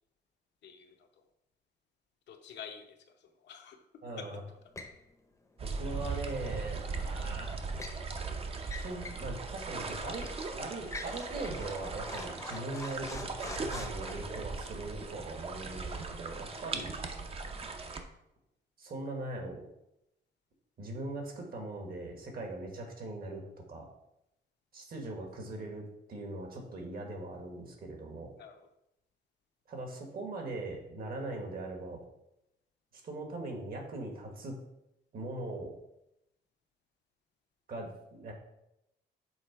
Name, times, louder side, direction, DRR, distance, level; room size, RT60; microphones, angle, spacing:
voice 1, 0.6-1.3 2.3-3.8 4.2-4.3 28.4-28.7, left 7 dB, 80° left, 4 dB, 0.8 m, -49 dB
voice 2, 4.0-4.4 5.6-7.7 8.8-10.3 10.5-16.9 18.8-19.6 20.8-23.9 24.7-28.3 29.7-32.0 33.0-34.6 35.1-35.7 37.7-38.3, right 2 dB, 55° right, 3 dB, 1.5 m, -40 dB
sound 1, 4.8-5.0 7.2-8.0 8.6-9.3 9.6-9.7 10.2-10.4 10.8-14.1, left 3 dB, 15° left, 0.7 m, -45 dB
sound 2, 5.6-18.0, right 4 dB, 35° right, 0.6 m, -39 dB
6.4 x 3.8 x 4.6 m, 0.85 s
cardioid pair, 135°, 18 cm